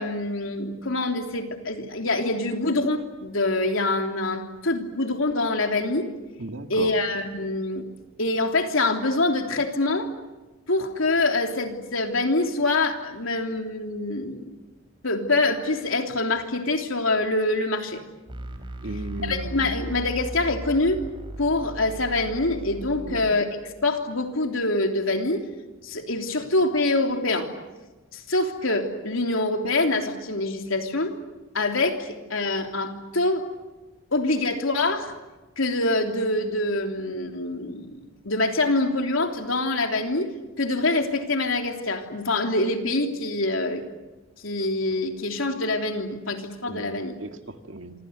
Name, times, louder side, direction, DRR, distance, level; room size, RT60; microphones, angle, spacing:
voice 1, 0.0-6.1 6.7-7.8 8.2-10.1 10.7-14.5 15.0-18.0 19.2-21.0 21.4-23.5 23.8-25.5 25.8-27.5 28.1-31.1 31.5-33.4 34.1-35.1 35.6-40.3 40.6-43.8 44.4-47.1, left 2 dB, 75° left, 4 dB, 3.3 m, -25 dB
voice 2, 6.4-6.9 18.8-19.6 23.0-23.2 46.7-47.9, right 2 dB, 65° right, 6 dB, 2.1 m, -36 dB
sound 1, 18.3-23.3, equal, 25° right, 4.2 m, -37 dB
27.0 x 26.0 x 8.1 m, 1.2 s
head